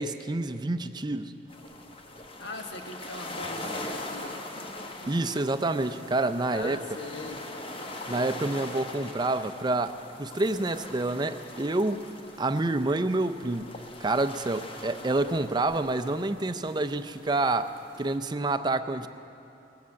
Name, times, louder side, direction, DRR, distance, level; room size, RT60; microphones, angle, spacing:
voice 1, 0.0-1.3 5.1-6.8 8.1-12.0 12.4-13.7 14.0-19.1, right 2 dB, 25° right, 10 dB, 0.5 m, -28 dB
sound 1, 1.5-18.2, left 2 dB, 30° left, 1.1 m, -42 dB
voice 2, 2.4-4.7 5.0-5.1 6.5-7.5, left 2 dB, 75° left, 4 dB, 1.3 m, -41 dB
20.0 x 7.7 x 8.3 m, 3.0 s
head